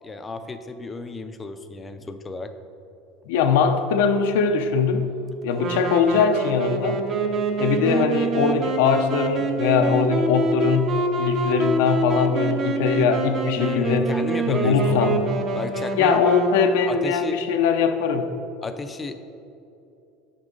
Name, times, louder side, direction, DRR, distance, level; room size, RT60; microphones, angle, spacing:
voice 1, 0.0-2.5 13.6-15.2 15.6-16.3 16.8-17.4 18.6-19.1, left 3 dB, 15° left, 9 dB, 0.4 m, -33 dB
voice 2, 3.3-5.0 5.4-7.0 7.6-14.1 14.5-15.3 16.0-18.3, left 5 dB, 80° left, 6 dB, 0.6 m, -21 dB
Wind instrument woodwind instrument, 5.5-17.3, right 3 dB, 30° right, 0.6 m, -26 dB
9.2 x 6.2 x 3.9 m, 2.7 s
cardioid pair, 165°, 0 cm